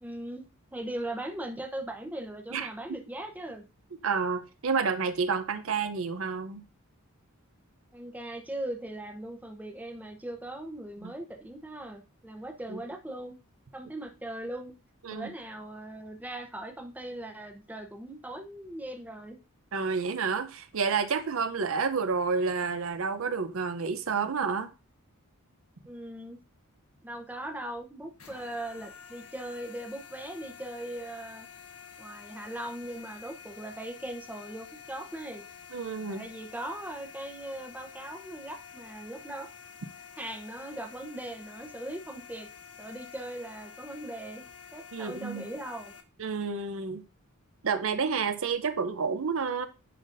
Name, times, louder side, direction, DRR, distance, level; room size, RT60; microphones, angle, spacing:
voice 1, 0.0-3.6 7.9-13.4 13.7-14.7 15.1-19.4 25.9-26.4 27.0-31.5 32.0-35.4 36.1-39.5 40.2-42.5 42.8-44.4 44.7-45.9, right 1 dB, 10° right, 0.8 m, -39 dB
voice 2, 4.0-6.6 11.0-11.1 12.7-12.8 15.0-15.3 19.7-24.7 35.7-36.2 44.9-45.4 46.2-47.0 47.6-49.7, right 5 dB, 70° right, 0.6 m, -29 dB
sound 1, 28.2-46.0, left 7 dB, 80° left, 1.3 m, -49 dB
10.0 x 4.0 x 2.6 m
head